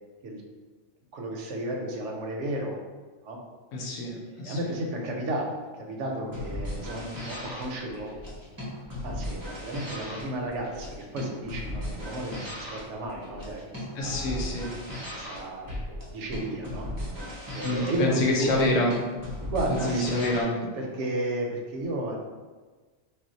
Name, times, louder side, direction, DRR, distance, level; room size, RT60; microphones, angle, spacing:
voice 1, 1.1-2.8 3.2-3.4 4.3-8.1 9.0-14.4 15.2-15.7 16.1-16.9 17.5-18.7 19.5-20.0 20.8-22.2, right 1 dB, 65° right, 0 dB, 0.8 m, -33 dB
voice 2, 3.7-4.6 13.9-14.7 17.6-18.9 19.7-20.5, left 1 dB, 75° left, -2 dB, 1.0 m, -27 dB
sound 1, 6.2-20.4, left 1 dB, 25° right, 0.4 m, -37 dB
2.4 x 2.1 x 3.8 m, 1.4 s
omnidirectional pair, 1.4 m